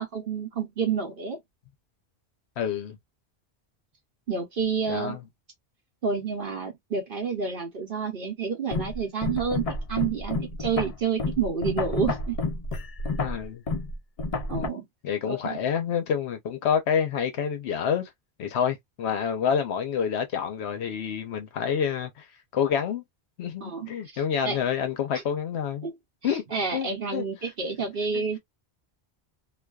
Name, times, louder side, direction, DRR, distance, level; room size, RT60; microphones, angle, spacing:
voice 1, 0.0-1.4 4.3-5.2 6.0-12.4 14.5-14.8 15.3-15.6 23.6-24.6 25.1-25.2 25.8-25.9 26.2-28.4, right 5 dB, 60° right, 0.8 m, -29 dB
voice 2, 2.6-3.0 4.9-5.2 13.2-13.6 14.6-14.7 15.0-18.1 18.4-22.2 22.5-23.0 23.4-25.9 26.2-26.4 26.7-27.2, left 8 dB, 75° left, 0.9 m, -28 dB
sound 1, 8.7-14.7, left 3 dB, 50° left, 0.4 m, -30 dB
2.4 x 2.2 x 2.2 m
omnidirectional pair, 1.1 m